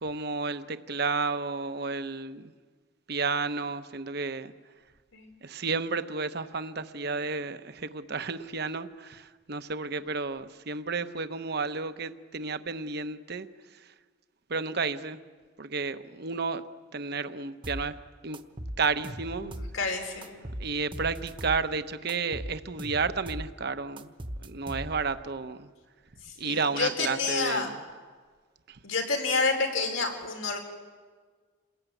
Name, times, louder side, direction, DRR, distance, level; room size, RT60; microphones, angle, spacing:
voice 1, 0.0-2.5 3.1-4.5 5.4-13.5 13.7-13.9 14.5-15.2 15.6-16.6 16.9-17.9 18.2-18.4 18.8-19.5 20.6-24.1 24.4-25.7 26.4-27.8 28.7-28.8, right 4 dB, 55° right, 1.0 m, -32 dB
sound 1, 17.6-17.9 18.3-19.8 20.2-21.6 22.1-23.5 24.0-25.2, equal, 25° right, 1.1 m, -38 dB
voice 2, 19.4-20.4 26.2-27.7 28.8-30.6, left 4 dB, 90° left, 4.6 m, -29 dB
28.0 x 20.5 x 9.2 m
head